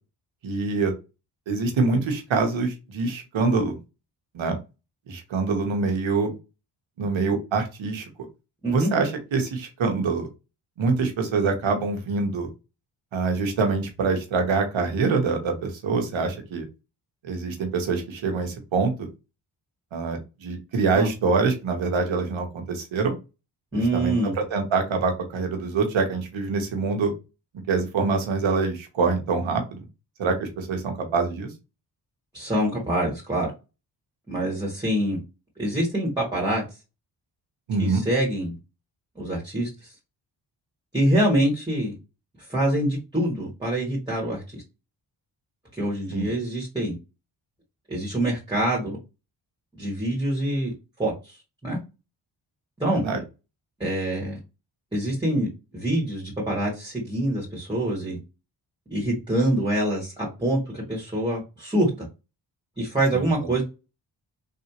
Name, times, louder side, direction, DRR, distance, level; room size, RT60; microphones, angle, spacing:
voice 1, 0.4-0.9 1.5-3.8 4.3-4.6 5.1-6.3 7.0-8.0 8.7-10.3 10.8-12.5 13.1-16.6 17.2-19.1 19.9-23.1 23.7-27.1 27.7-29.8 30.2-31.5 37.7-38.0 46.1-46.3 53.0-53.2, right 4 dB, 70° right, 4 dB, 1.2 m, -25 dB
voice 2, 23.7-24.3 32.3-33.5 34.3-35.2 35.6-36.6 37.8-38.5 39.2-39.9 40.9-41.9 42.5-44.6 45.7-47.0 47.9-49.0 49.8-50.7 51.0-51.8 52.8-53.0 53.8-54.4 54.9-55.5 55.7-58.2 58.9-62.1 62.8-63.6, right 1 dB, 10° right, -3 dB, 1.8 m, -25 dB
3.3 x 2.6 x 2.9 m, 0.28 s
cardioid pair, 50°, 47 cm